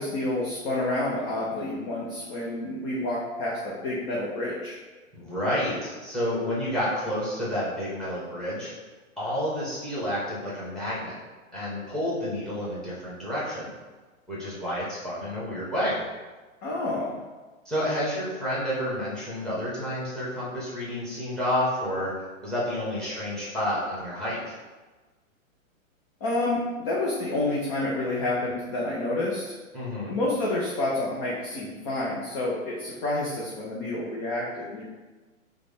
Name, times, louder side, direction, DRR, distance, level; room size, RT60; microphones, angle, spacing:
voice 1, 0.0-4.8 16.6-17.2 26.2-29.5 30.1-34.8, left 2 dB, 25° left, -5 dB, 0.5 m, -29 dB
voice 2, 5.1-8.7 9.2-11.2 11.5-13.7 14.3-16.0 17.6-22.1 22.4-24.6 29.7-30.1, equal, ahead, -7 dB, 1.2 m, -30 dB
4.8 x 2.2 x 3.5 m, 1.3 s
figure-of-eight pair, 115°, 42 cm